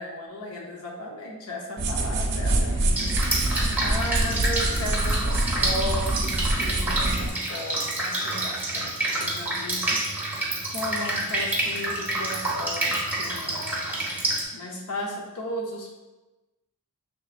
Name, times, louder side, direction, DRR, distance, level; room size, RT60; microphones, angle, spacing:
voice 1, 0.0-3.1 3.5-13.8 14.2-15.9, left 1 dB, 75° left, 0 dB, 0.6 m, -35 dB
sound 1, 1.8-7.3, right 2 dB, 50° right, 0.5 m, -25 dB
Drip, 3.0-14.4, right 2 dB, 10° right, 0.6 m, -28 dB
6.1 x 3.3 x 2.4 m, 1.1 s
head